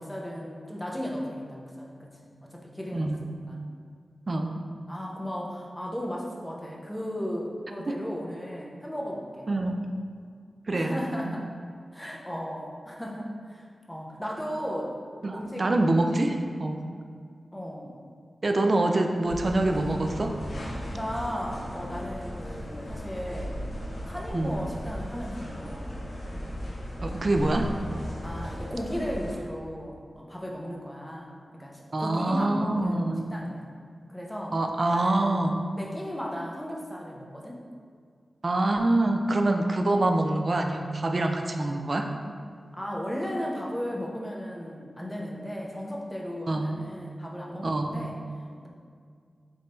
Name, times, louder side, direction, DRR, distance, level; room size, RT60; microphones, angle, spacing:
voice 1, 0.0-3.6 4.9-9.8 10.7-11.5 11.9-15.0 15.3-15.7 17.5-18.0 20.9-23.6 24.1-25.9 28.2-33.7 34.1-34.6 34.9-35.4 35.8-37.6 42.7-48.2 48.6-48.7, equal, 10° left, -2 dB, 0.6 m, -36 dB
voice 2, 2.9-3.2 4.3-4.6 7.9-8.0 9.5-9.8 10.7-11.3 15.2-16.9 18.4-20.4 24.3-24.6 27.0-27.8 31.9-33.3 34.5-35.6 38.4-42.1 46.5-46.8 47.6-48.0, right 2 dB, 45° right, 4 dB, 0.3 m, -25 dB
sound 1, 19.3-29.3, equal, 60° left, 0.7 m, -36 dB
3.6 x 2.6 x 4.2 m, 2.1 s
wide cardioid pair, 85°, 0 cm